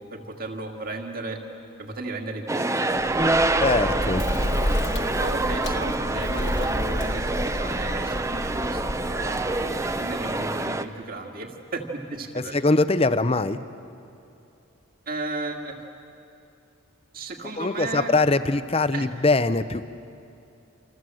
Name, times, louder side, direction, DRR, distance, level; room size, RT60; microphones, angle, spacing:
voice 1, 0.0-1.4 1.8-2.8 5.0-12.8 15.1-15.8 17.1-18.1 18.9-19.1, right 2 dB, 40° right, 3 dB, 2.2 m, -34 dB
sound 1, 2.5-10.8, right 2 dB, 15° right, 0.6 m, -26 dB
Bird, 2.9-10.7, left 1 dB, 55° left, 1.5 m, -31 dB
voice 2, 3.6-4.2 12.3-13.6 17.6-19.8, left 3 dB, 25° left, 12 dB, 0.7 m, -22 dB
28.0 x 26.5 x 7.8 m, 2.7 s
head